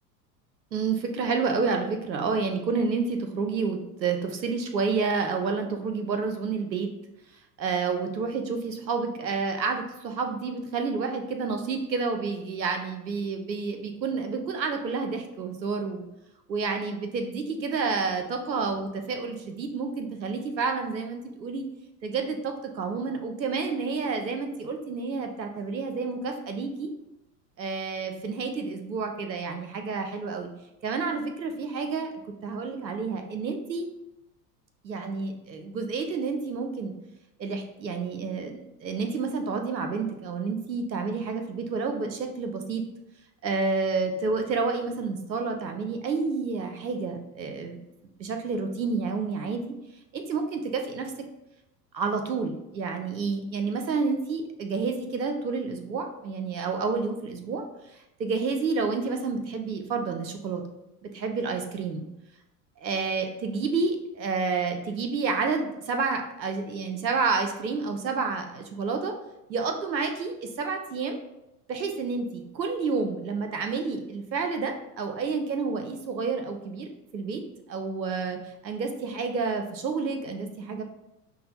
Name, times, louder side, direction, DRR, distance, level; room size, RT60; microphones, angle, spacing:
voice 1, 0.7-6.9 7.6-16.0 16.5-21.7 22.0-26.9 27.6-30.5 30.8-32.1 32.4-33.9 34.8-36.9 37.4-42.8 43.4-47.8 48.2-49.6 50.1-51.1 51.9-57.6 58.2-60.6 61.0-62.1 62.8-69.1 69.5-71.2 71.7-77.4 77.7-80.8, right 4 dB, 90° right, 5 dB, 0.6 m, -29 dB
5.6 x 2.1 x 2.8 m, 0.91 s
figure-of-eight pair, 80°, 50 cm